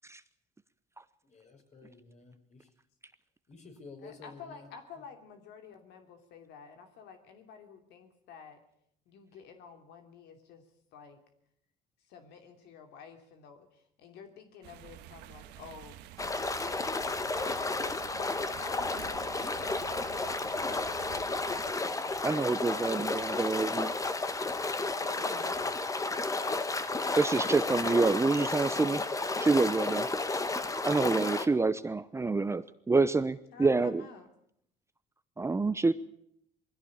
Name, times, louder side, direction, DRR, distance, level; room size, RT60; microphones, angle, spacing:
voice 1, 1.2-2.7 3.5-4.7 25.0-25.8 29.8-30.0, left 3 dB, 45° left, 4 dB, 5.8 m, -51 dB
voice 2, 4.0-8.6 9.1-10.6 10.9-11.2 12.1-16.0 17.4-20.1 20.9-21.4 21.9-22.3 25.0-25.5 33.5-34.3, left 6 dB, 80° left, 6 dB, 2.9 m, -50 dB
sound 1, 14.6-21.7, right 11 dB, 90° right, 1.5 m, -49 dB
sound 2, 16.2-31.5, left 3 dB, 20° left, 1.4 m, -32 dB
voice 3, 22.2-23.9 27.2-29.0 29.4-30.1 30.8-34.0 35.4-35.9, right 3 dB, 15° right, 13 dB, 0.8 m, -27 dB
21.0 x 16.0 x 8.7 m, 0.72 s
cardioid pair, 110°, 17 cm